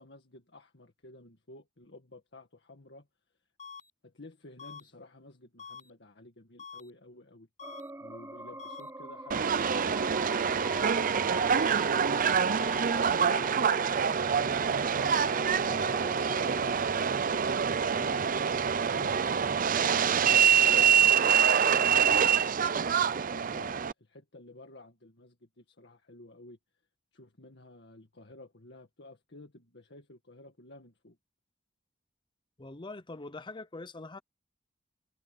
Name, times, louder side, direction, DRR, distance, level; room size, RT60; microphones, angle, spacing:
voice 1, 0.0-3.1 4.0-7.5 8.0-13.5 14.0-17.3 17.7-22.3 23.1-26.6 27.1-31.2, left 2 dB, 65° left, 1.9 m, -52 dB
sound 1, 3.6-3.9 4.6-4.9 5.6-5.9 6.6-6.9 7.6-7.9 8.6-8.9 9.6-9.9 10.6-10.9 11.6-11.9 12.6-12.9, left 6 dB, 40° left, 7.1 m, -46 dB
sound 2, 7.6-16.9, right 2 dB, 15° right, 3.5 m, -42 dB
Subway metro underground, 9.3-23.9, right 7 dB, 50° right, 0.6 m, -25 dB
voice 2, 32.6-34.2, left 2 dB, 25° left, 0.8 m, -43 dB
head